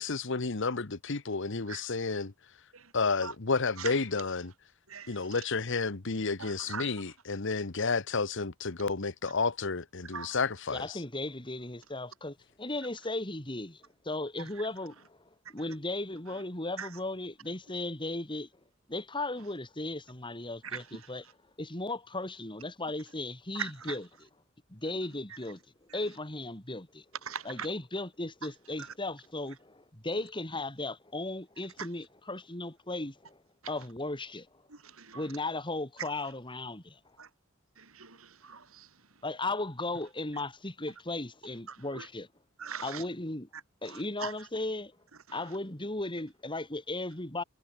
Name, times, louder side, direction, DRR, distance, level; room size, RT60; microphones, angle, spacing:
voice 1, 0.0-2.3 2.9-4.5 5.1-11.0, left 4 dB, 60° left, 1.2 m, -31 dB
voice 2, 6.4-6.9 10.1-10.3 14.4-14.5 16.8-16.9 20.6-21.1 23.5-24.0 25.9-26.0 27.2-27.7 28.8-28.9 31.8-31.9 34.7-35.3 37.2-37.3 37.8-38.9 41.7-42.1 42.6-43.0 43.8-44.3 45.3-45.4, right 6 dB, 80° right, 3.3 m, -41 dB
voice 3, 10.7-15.2 15.5-18.5 18.9-21.2 21.6-24.0 24.7-25.6 25.9-27.0 27.4-33.4 33.7-34.5 35.1-37.0 39.2-42.3 42.8-43.5 43.8-44.9 45.3-47.4, left 2 dB, 25° left, 3.2 m, -36 dB
head